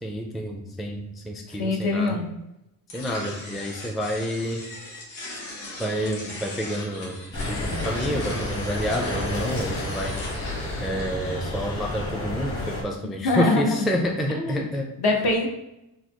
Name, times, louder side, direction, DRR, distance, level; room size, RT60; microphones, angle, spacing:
voice 1, 0.0-2.2 2.9-4.6 5.8-10.2 10.8-14.9, equal, ahead, 1 dB, 0.4 m, -29 dB
voice 2, 1.5-2.3 13.2-13.9 14.3-14.6 15.0-15.5, left 2 dB, 55° left, 1 dB, 0.9 m, -23 dB
sound 1, 2.9-12.1, left 2 dB, 90° left, 1.0 m, -38 dB
sound 2, 7.3-12.8, left 1 dB, 30° left, 1.4 m, -31 dB
3.9 x 2.1 x 2.9 m, 0.89 s
supercardioid pair, 55°, 45 cm